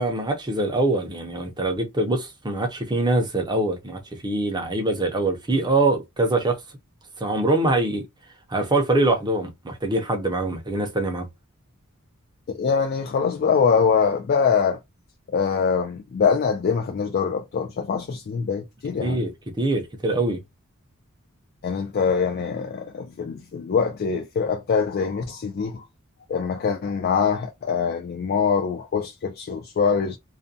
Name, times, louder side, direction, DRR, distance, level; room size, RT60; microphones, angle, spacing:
voice 1, 0.0-6.6 7.2-8.0 8.5-11.3 19.0-20.4, right 2 dB, 20° right, 0.5 m, -24 dB
voice 2, 12.5-14.8 15.3-19.3 21.6-25.8 26.3-30.2, left 6 dB, 45° left, 0.3 m, -23 dB
2.4 x 2.1 x 2.6 m
head